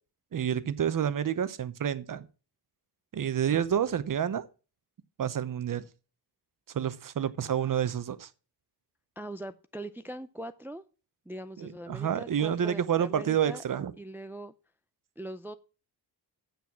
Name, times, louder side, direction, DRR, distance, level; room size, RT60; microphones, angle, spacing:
voice 1, 0.3-2.3 3.1-4.5 5.2-5.8 6.7-8.3 11.6-13.9, right 9 dB, 50° right, 0.9 m, -29 dB
voice 2, 9.2-10.8 11.3-13.6 14.0-14.5 15.2-15.6, right 1 dB, 5° right, 0.4 m, -41 dB
7.9 x 7.1 x 6.0 m
wide cardioid pair, 120°, 41 cm